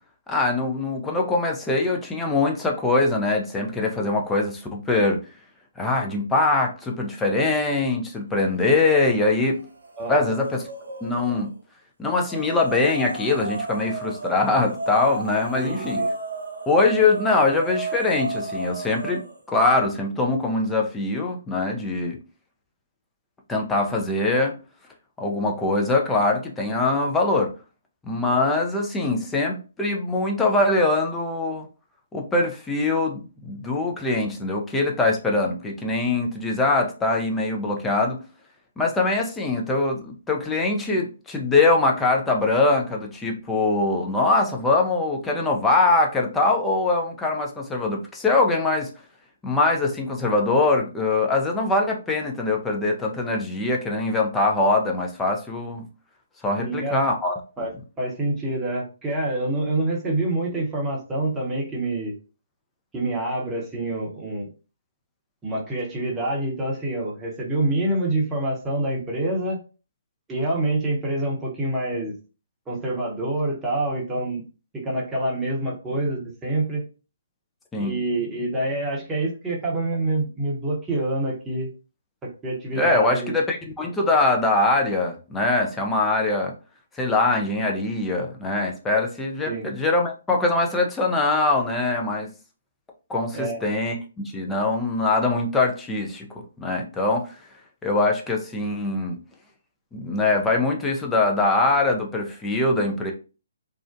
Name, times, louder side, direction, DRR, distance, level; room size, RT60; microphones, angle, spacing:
voice 1, 0.3-5.2 5.8-9.6 10.1-10.6 11.0-11.5 12.0-16.0 16.7-22.2 23.5-24.5 25.2-27.5 28.0-31.7 32.1-38.2 38.8-48.9 49.4-55.8 56.4-57.3 77.7-77.9 82.8-86.5 87.0-92.3 93.1-96.3 96.6-97.3 97.8-99.2 99.9-103.1, left 2 dB, 10° left, 0 dB, 0.5 m, -22 dB
sound 1, 8.7-9.3 9.6-11.5 12.2-19.4, right 3 dB, 75° right, 0.6 m, -33 dB
voice 2, 10.0-10.3 15.6-16.1 56.6-57.0 57.6-62.1 62.9-64.5 65.4-69.6 70.3-72.1 72.7-74.4 74.7-76.8 77.8-81.7 82.2-83.3 89.5-89.7 93.3-93.6, right 2 dB, 15° right, -3 dB, 0.8 m, -26 dB
2.4 x 2.1 x 2.5 m, 0.34 s
figure-of-eight pair, 135°, 0 cm